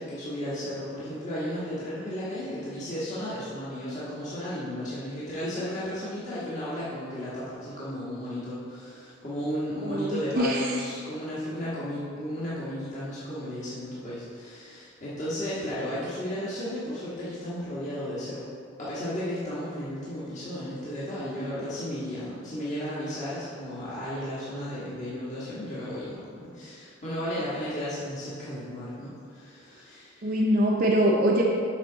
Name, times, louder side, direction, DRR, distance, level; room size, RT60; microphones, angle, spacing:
voice 1, 0.0-18.5 18.8-30.4, equal, 40° left, -10 dB, 1.5 m, -34 dB
voice 2, 9.8-10.8 30.2-31.5, right 1 dB, 50° right, -2 dB, 0.7 m, -23 dB
8.2 x 5.9 x 4.0 m, 2.2 s
head